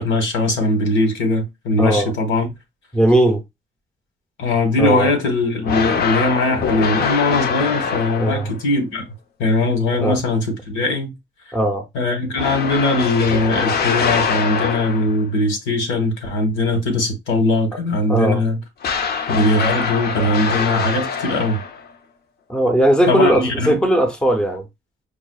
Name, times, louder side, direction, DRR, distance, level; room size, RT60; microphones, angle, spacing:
voice 1, 0.0-2.5 4.4-9.0 9.4-11.1 11.9-18.6 19.3-21.6 23.1-23.8, left 2 dB, 80° left, 1.2 m, -20 dB
voice 2, 1.8-2.1 2.9-3.4 4.8-5.1 8.2-8.5 10.0-10.2 11.5-11.9 18.1-18.4 22.5-24.7, right 1 dB, 5° left, 0.6 m, -18 dB
sound 1, 5.6-8.6 12.4-15.3 18.8-21.9, left 6 dB, 55° left, 0.6 m, -23 dB
4.8 x 2.2 x 2.3 m
cardioid pair, 90°, 20 cm